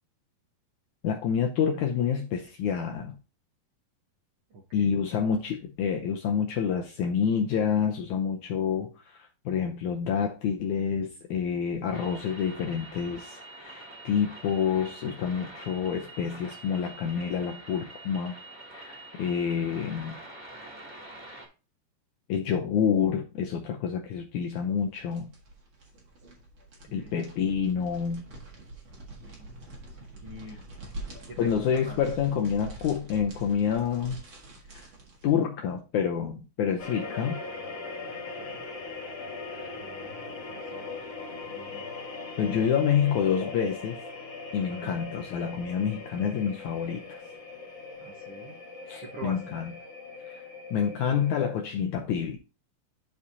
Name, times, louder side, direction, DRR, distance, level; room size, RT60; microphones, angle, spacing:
voice 1, 1.0-3.2 4.7-18.3 18.7-20.2 22.3-25.3 26.9-28.2 31.4-34.2 34.7-34.9 35.2-37.4 39.5-39.7 42.4-44.0 44.5-47.2 48.9-49.7 50.3-52.4, left 7 dB, 75° left, 1.8 m, -28 dB
voice 2, 4.5-5.0 19.7-19.9 26.9-27.2 29.1-29.6 30.2-30.6 31.3-32.0 35.3-35.4 38.0-38.7 39.7-40.9 41.4-41.9 44.7-45.0 48.0-48.6 48.8-49.4, right 2 dB, 65° right, 1.4 m, -45 dB
sound 1, 11.9-21.5, right 2 dB, 5° right, 1.8 m, -46 dB
sound 2, 24.7-35.4, right 1 dB, 45° right, 1.9 m, -45 dB
sound 3, 36.8-51.4, left 3 dB, 50° left, 2.3 m, -40 dB
11.5 x 4.8 x 2.7 m
omnidirectional pair, 4.2 m